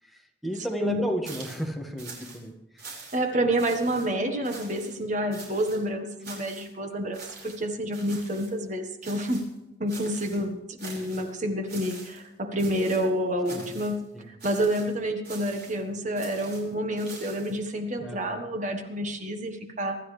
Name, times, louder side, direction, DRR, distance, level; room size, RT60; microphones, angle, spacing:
voice 1, 0.0-3.0 13.5-13.8 14.1-14.3 18.0-18.4, equal, ahead, 1 dB, 1.7 m, -33 dB
sound 1, 1.2-1.7 2.0-2.4 2.8-3.3 3.6-4.1 4.4-4.9 5.3-5.8 6.2-6.7 7.1-7.6 7.9-8.5 9.0-9.5 9.9-10.4 10.8-11.3 11.7-12.3 12.6-13.1 13.4-14.0 14.4-14.9 15.2-15.8 16.2-17.6, right 4 dB, 60° right, 5.3 m, -44 dB
voice 2, 3.1-9.4 9.8-20.0, right 1 dB, 40° right, 5 dB, 1.4 m, -29 dB
24.5 x 12.5 x 3.3 m, 0.96 s
head